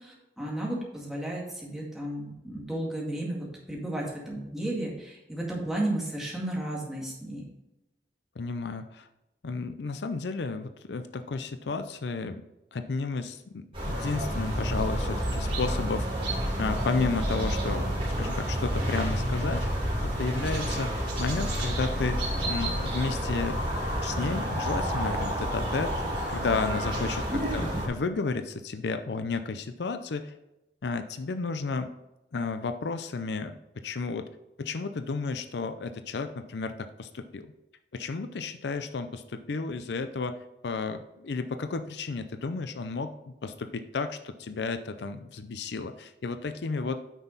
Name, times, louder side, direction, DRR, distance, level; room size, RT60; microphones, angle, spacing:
voice 1, 0.0-7.4 27.6-27.8, right 1 dB, ahead, -3 dB, 2.0 m, -33 dB
voice 2, 8.4-9.1 9.4-12.4 12.7-16.1 16.6-19.7 20.0-23.6 24.0-25.9 26.3-30.3 30.8-31.9 32.3-34.3 34.6-37.5 37.9-40.4 40.6-43.1 43.4-47.0, left 4 dB, 70° left, 9 dB, 0.5 m, -32 dB
sound 1, 13.7-27.9, equal, 30° right, 2.9 m, -29 dB
9.0 x 6.1 x 4.0 m, 0.93 s
head